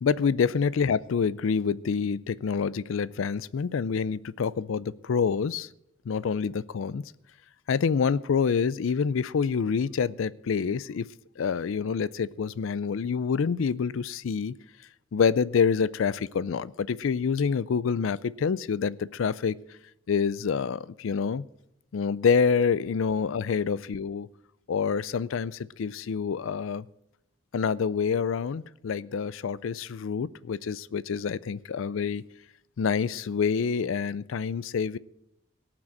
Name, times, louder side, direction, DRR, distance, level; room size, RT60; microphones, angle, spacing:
voice 1, 0.0-5.7 6.1-7.0 7.7-11.1 11.4-14.5 15.1-19.6 20.1-21.4 21.9-24.3 24.7-26.9 27.5-32.2 32.8-35.0, left 6 dB, 75° left, 0.4 m, -27 dB
17.5 x 6.1 x 7.7 m
head